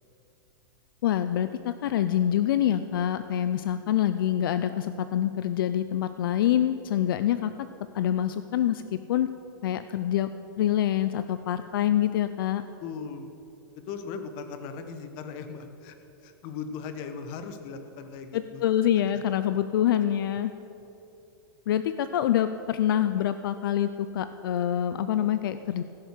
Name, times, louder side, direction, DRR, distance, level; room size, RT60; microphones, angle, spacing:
voice 1, 1.0-7.5 7.9-9.3 9.6-10.3 10.6-12.6 18.3-20.5 21.7-25.8, left 11 dB, 75° left, 11 dB, 0.5 m, -26 dB
voice 2, 12.8-13.3 13.7-18.6 19.1-19.2, left 5 dB, 40° left, 8 dB, 1.1 m, -38 dB
16.0 x 6.4 x 6.6 m, 3.0 s
supercardioid pair, 145°, 12 cm